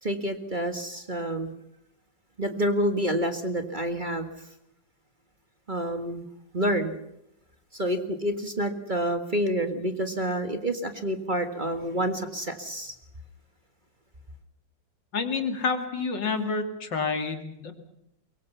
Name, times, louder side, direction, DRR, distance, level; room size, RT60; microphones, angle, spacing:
voice 1, 0.0-1.5 2.4-4.3 5.7-6.2 6.5-7.0 7.7-12.9, equal, 25° right, 7 dB, 1.8 m, -28 dB
voice 2, 15.1-17.7, left 4 dB, 75° left, 6 dB, 3.2 m, -28 dB
23.5 x 23.0 x 5.6 m, 0.83 s
omnidirectional pair, 2.0 m